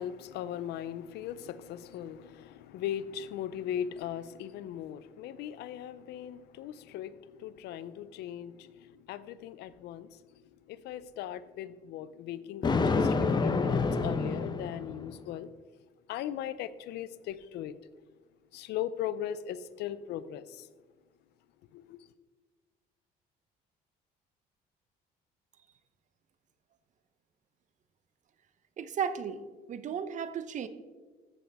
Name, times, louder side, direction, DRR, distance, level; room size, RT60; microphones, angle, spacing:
voice 1, 0.0-10.2 10.7-15.5 16.1-17.7 18.5-20.7 21.7-22.0, left 10 dB, 80° left, 0.5 m, -38 dB
Thunder, 12.6-15.2, left 4 dB, 25° left, 0.8 m, -28 dB
voice 2, 28.8-29.4 29.7-30.7, right 7 dB, 45° right, 0.8 m, -34 dB
14.0 x 8.1 x 3.5 m
cardioid pair, 110°, 17 cm